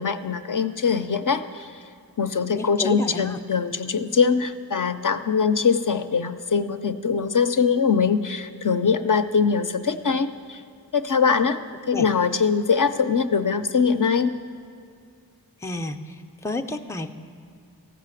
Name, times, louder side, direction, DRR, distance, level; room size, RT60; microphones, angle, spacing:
voice 1, 0.0-1.7 2.2-10.6 10.9-11.6 11.9-14.3, left 5 dB, 60° left, 8 dB, 0.5 m, -22 dB
voice 2, 2.5-3.4 11.9-12.1 15.6-16.1 16.4-17.1, left 3 dB, 10° left, 6 dB, 0.5 m, -30 dB
14.5 x 5.8 x 8.9 m, 2.3 s
wide cardioid pair, 60°, 37 cm